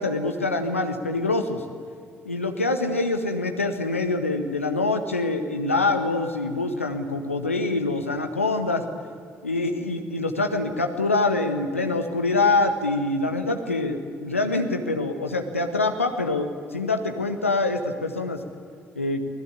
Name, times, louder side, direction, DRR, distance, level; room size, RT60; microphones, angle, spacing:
voice 1, 0.0-1.6 2.2-8.8 9.4-18.4 18.9-19.2, left 2 dB, 85° left, 6 dB, 1.6 m, -25 dB
29.5 x 20.5 x 8.5 m, 2.2 s
figure-of-eight pair, 45°, 7 cm